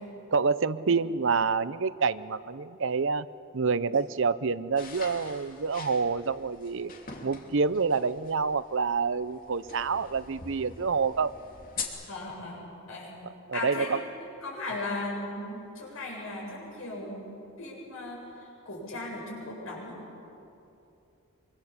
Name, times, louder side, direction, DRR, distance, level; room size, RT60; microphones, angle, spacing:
voice 1, 0.3-3.3 3.5-6.9 7.2-11.4 13.2-14.0, right 5 dB, 65° right, 16 dB, 0.6 m, -27 dB
sound 1, 4.8-11.8, left 5 dB, 40° left, 2.8 m, -44 dB
voice 2, 12.1-13.1 13.5-14.1 14.4-17.3 17.6-18.2 18.6-20.0, left 2 dB, 75° left, -3 dB, 7.9 m, -37 dB
25.0 x 24.5 x 7.4 m, 2.8 s
head